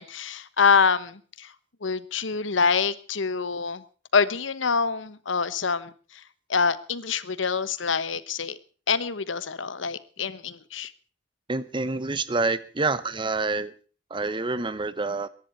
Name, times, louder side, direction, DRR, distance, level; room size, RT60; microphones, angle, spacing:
voice 1, 0.0-1.5 1.8-3.8 4.1-6.2 6.5-8.6 8.9-10.9, left 5 dB, 85° left, 15 dB, 1.1 m, -25 dB
voice 2, 11.5-13.7 14.1-15.3, right 3 dB, 25° right, 15 dB, 0.9 m, -27 dB
22.5 x 11.0 x 4.4 m, 0.39 s
head